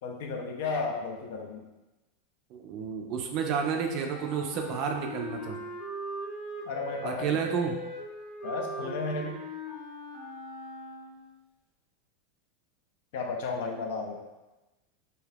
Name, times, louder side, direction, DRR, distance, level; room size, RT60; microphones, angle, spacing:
voice 1, 0.0-1.6 6.7-7.4 8.4-9.4 13.1-14.2, left 4 dB, 60° left, 2 dB, 0.5 m, -33 dB
voice 2, 2.5-5.6 7.0-7.8, right 6 dB, 35° right, 3 dB, 0.3 m, -30 dB
Wind instrument woodwind instrument, 4.0-11.4, equal, 15° left, 0.9 m, -40 dB
2.7 x 2.3 x 3.4 m, 1.1 s
supercardioid pair, 170°, 0 cm